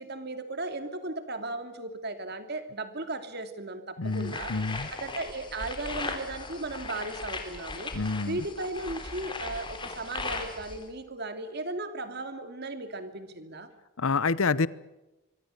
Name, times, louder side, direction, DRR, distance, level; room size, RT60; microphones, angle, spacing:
voice 1, 0.0-4.6 4.9-7.9 8.3-13.7, right 2 dB, 50° right, 8 dB, 2.7 m, -36 dB
voice 2, 4.0-4.9 7.9-8.4 14.0-14.7, left 4 dB, 75° left, 19 dB, 0.9 m, -28 dB
sound 1, 4.1-10.8, left 3 dB, 20° left, 3.6 m, -38 dB
25.5 x 24.0 x 6.7 m, 1.0 s
head